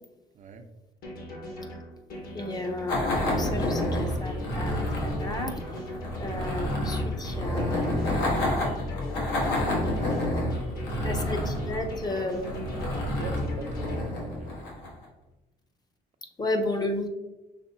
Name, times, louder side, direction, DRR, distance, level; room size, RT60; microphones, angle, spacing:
voice 1, 0.3-0.7 10.5-11.0 13.0-14.6, right 4 dB, 45° right, 5 dB, 0.6 m, -43 dB
sound 1, 1.0-14.0, left 1 dB, 60° left, 1.5 m, -40 dB
voice 2, 2.3-5.6 6.2-8.0 11.0-12.8 16.4-17.1, left 2 dB, 25° left, 5 dB, 0.7 m, -33 dB
sound 2, 2.9-15.1, left 1 dB, 80° left, 1.3 m, -29 dB
5.8 x 3.3 x 2.7 m, 1.0 s
cardioid pair, 110°, 17 cm